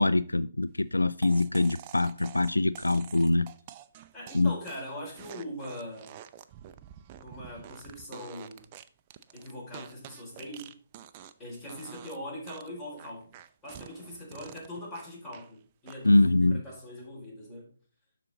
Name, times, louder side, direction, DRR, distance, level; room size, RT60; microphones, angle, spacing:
voice 1, 0.0-3.5 4.3-4.5 16.0-16.6, left 2 dB, 85° left, 0.3 m, -24 dB
sound 1, 1.2-11.4 11.7-12.2 12.5-15.5 15.9-16.3, right 10 dB, 30° right, 0.5 m, -48 dB
voice 2, 4.1-6.2 7.2-8.7 9.3-10.7 11.4-13.3 13.6-17.7, left 1 dB, 15° left, 4.1 m, -41 dB
12.0 x 4.1 x 4.0 m
figure-of-eight pair, 135°, 0 cm